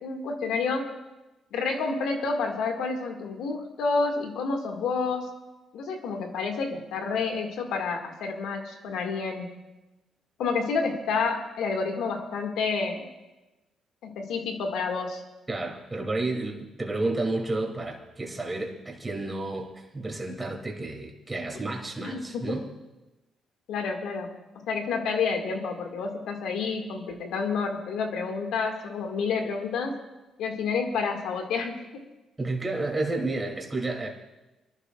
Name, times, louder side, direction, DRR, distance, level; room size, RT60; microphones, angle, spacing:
voice 1, 0.0-0.9 1.5-5.3 5.7-9.5 10.4-13.1 14.0-15.2 22.0-22.6 23.7-24.3 24.7-30.0 30.4-32.0, left 4 dB, 85° left, 3 dB, 2.0 m, -29 dB
voice 2, 15.5-22.7 32.4-34.1, right 2 dB, 20° right, 0 dB, 2.8 m, -31 dB
27.5 x 11.5 x 2.4 m, 1.1 s
cardioid pair, 90°, 0 cm